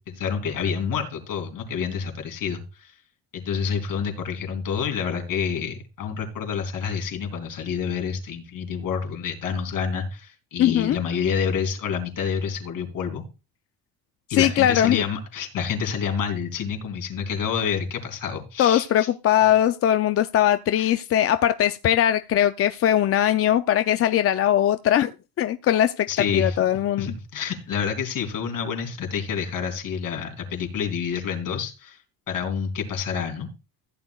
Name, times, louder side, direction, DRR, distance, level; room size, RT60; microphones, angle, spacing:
voice 1, 0.1-2.9 3.3-13.2 14.3-19.1 20.8-20.9 26.1-26.6 27.0-32.0 32.3-33.5, left 6 dB, 60° left, 3.4 m, -28 dB
voice 2, 10.6-11.0 14.3-15.0 18.6-25.1 25.4-27.1, left 11 dB, 40° left, 0.4 m, -20 dB
15.5 x 9.9 x 2.3 m
cardioid pair, 145°, 37 cm